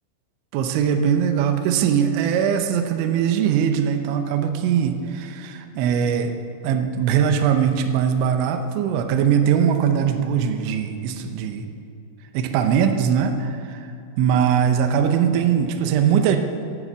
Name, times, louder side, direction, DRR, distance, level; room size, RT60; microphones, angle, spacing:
voice 1, 0.5-6.3 6.6-11.6 12.3-13.9 14.2-16.4, right 8 dB, 80° right, 6 dB, 2.9 m, -21 dB
11.0 x 9.9 x 8.1 m, 2.6 s
omnidirectional pair, 5.9 m